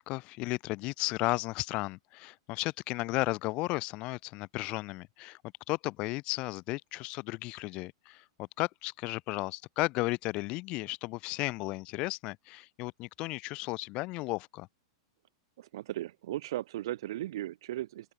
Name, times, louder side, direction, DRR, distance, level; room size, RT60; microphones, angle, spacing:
voice 1, 0.0-5.4 5.7-14.7, left 22 dB, 40° left, 0.6 m, -34 dB
voice 2, 15.6-18.1, right 14 dB, 70° right, 0.8 m, -37 dB
open air
supercardioid pair, 140°, 3 cm